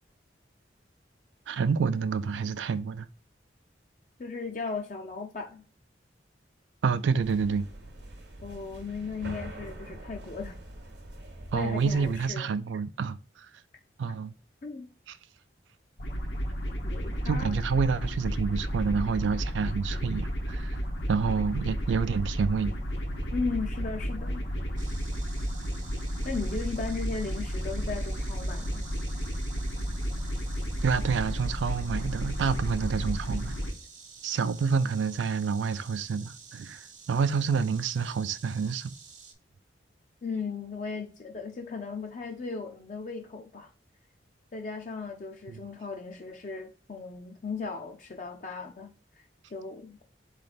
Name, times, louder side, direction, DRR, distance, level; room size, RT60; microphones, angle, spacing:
voice 1, 1.5-3.1 6.8-7.7 11.5-13.2 14.0-14.3 17.3-20.8 21.1-22.8 30.8-33.5 34.2-38.9 45.5-45.6, right 5 dB, 85° right, 0.4 m, -28 dB
voice 2, 4.2-5.6 8.4-10.6 11.5-12.6 14.6-14.9 16.8-17.5 23.3-24.4 26.2-28.8 40.2-43.7 44.5-48.9 49.5-50.0, left 4 dB, 40° left, 0.5 m, -36 dB
sound 1, 7.2-12.3, right 1 dB, 70° right, 1.0 m, -44 dB
sound 2, 16.0-33.7, equal, 75° left, 1.0 m, -32 dB
Insect, 24.8-39.3, right 5 dB, 45° right, 0.7 m, -50 dB
4.2 x 3.2 x 3.9 m
head